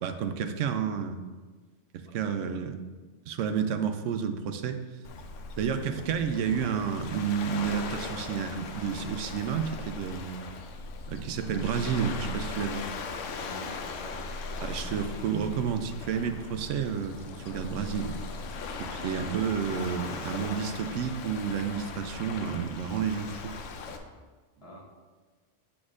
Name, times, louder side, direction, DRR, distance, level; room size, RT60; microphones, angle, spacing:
voice 1, 0.0-1.2 1.9-2.7 3.3-4.8 5.6-10.4 11.1-12.9 14.6-18.2 18.8-23.5, right 7 dB, 80° right, 8 dB, 0.9 m, -30 dB
voice 2, 2.0-2.5 13.4-14.3 18.7-19.0 24.6-24.8, left 1 dB, 55° left, -3 dB, 1.5 m, -48 dB
Waves surf, 5.0-24.0, left 4 dB, 80° left, 1.0 m, -39 dB
8.2 x 6.0 x 2.5 m, 1.4 s
omnidirectional pair, 1.3 m